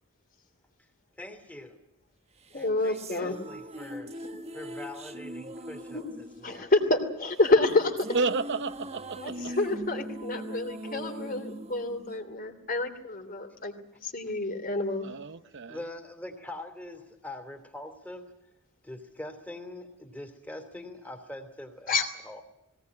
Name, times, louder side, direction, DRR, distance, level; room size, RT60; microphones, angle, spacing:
voice 1, 1.2-1.8 2.5-4.1 4.5-6.7 14.2-14.3 15.7-18.3 18.8-22.0 22.2-22.4, left 1 dB, 10° left, 3.0 m, -43 dB
sound 1, 2.4-12.9, right 1 dB, 30° right, 1.2 m, -41 dB
voice 2, 2.5-3.4 5.9-6.0 6.4-8.1 9.2-13.7 14.0-15.1 21.9-22.1, left 2 dB, 40° left, 2.9 m, -28 dB
voice 3, 8.1-9.5 15.0-15.8, right 3 dB, 55° right, 0.7 m, -31 dB
20.0 x 18.0 x 9.6 m
head